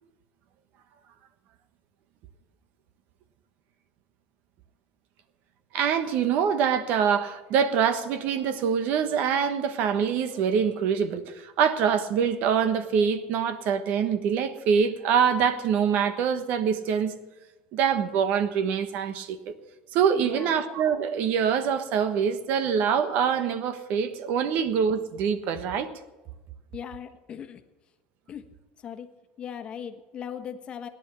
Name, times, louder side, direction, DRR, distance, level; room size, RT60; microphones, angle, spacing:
voice 1, 5.7-17.1 17.7-19.5 19.9-25.9, right 7 dB, 60° right, 1.3 m, -25 dB
voice 2, 20.1-20.6 26.7-27.6 28.3-28.5 28.8-29.1 29.4-30.9, left 8 dB, 35° left, 1.3 m, -38 dB
17.5 x 10.5 x 6.9 m
cardioid pair, 145°, 3 cm